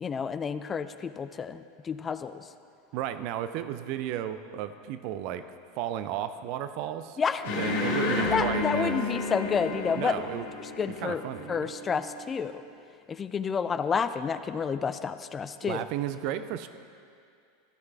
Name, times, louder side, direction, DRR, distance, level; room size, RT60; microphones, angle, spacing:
voice 1, 0.0-2.5 7.2-7.5 8.3-10.2 10.6-11.2 11.5-12.6 13.1-15.8, left 6 dB, 25° left, 12 dB, 0.3 m, -30 dB
voice 2, 2.9-5.4 5.8-7.2 7.5-9.0 10.0-10.5 11.0-11.6 15.6-16.7, right 11 dB, 50° right, 11 dB, 0.4 m, -33 dB
sound 1, 7.4-12.4, left 3 dB, 55° left, 2.1 m, -32 dB
13.5 x 6.3 x 3.4 m, 2.4 s
figure-of-eight pair, 85°, 0 cm